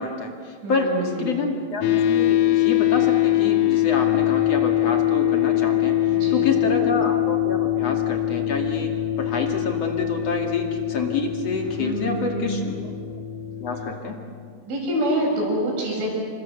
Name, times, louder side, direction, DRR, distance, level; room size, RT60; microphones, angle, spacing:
voice 1, 0.0-8.9 9.2-12.7 13.6-14.1, left 3 dB, 40° left, 2 dB, 2.7 m, -28 dB
voice 2, 0.6-1.4 6.1-6.6 11.8-12.7 14.6-16.1, equal, 75° right, -2 dB, 9.4 m, -26 dB
sound 1, 1.8-13.9, left 14 dB, 85° left, 1.8 m, -23 dB
29.0 x 26.0 x 6.9 m, 2.2 s
omnidirectional pair, 5.5 m